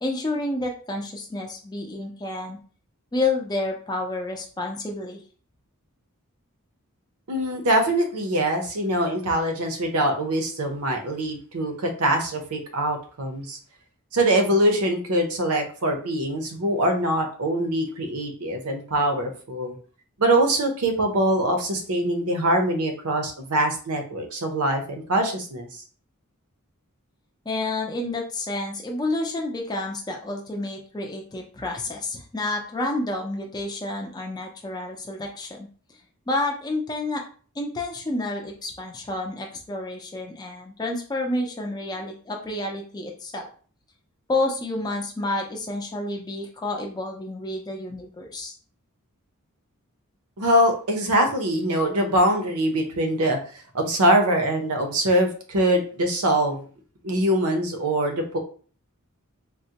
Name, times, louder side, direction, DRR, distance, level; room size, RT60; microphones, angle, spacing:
voice 1, 0.0-2.6 3.1-5.2 27.5-35.7 36.3-37.2 37.6-43.5 44.3-48.5, left 2 dB, 20° left, 1 dB, 0.5 m, -29 dB
voice 2, 7.3-13.6 14.1-19.8 20.2-25.8 50.4-53.4 53.7-56.6 57.0-58.4, right 1 dB, 80° right, 4 dB, 0.7 m, -23 dB
3.8 x 2.1 x 2.8 m, 0.42 s
head